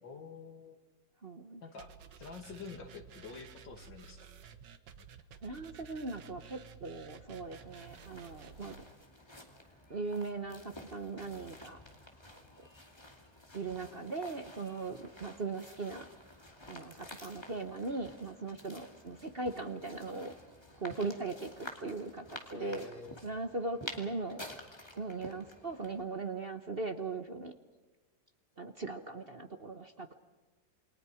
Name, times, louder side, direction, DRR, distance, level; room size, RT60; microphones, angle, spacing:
voice 1, 0.0-0.8 1.6-1.9 2.2-4.3 14.9-15.0 22.5-23.2, left 4 dB, 75° left, 4 dB, 3.0 m, -47 dB
voice 2, 1.2-1.6 5.4-8.8 9.9-11.8 13.5-16.1 16.7-20.3 20.8-22.9 23.2-24.4 24.9-27.5 28.6-30.1, right 3 dB, 35° right, 7 dB, 1.1 m, -39 dB
sound 1, 1.8-8.8, right 7 dB, 70° right, 1.8 m, -53 dB
sound 2, 7.4-26.0, left 1 dB, 15° left, 2.4 m, -51 dB
28.5 x 22.5 x 5.0 m, 1.2 s
omnidirectional pair, 2.0 m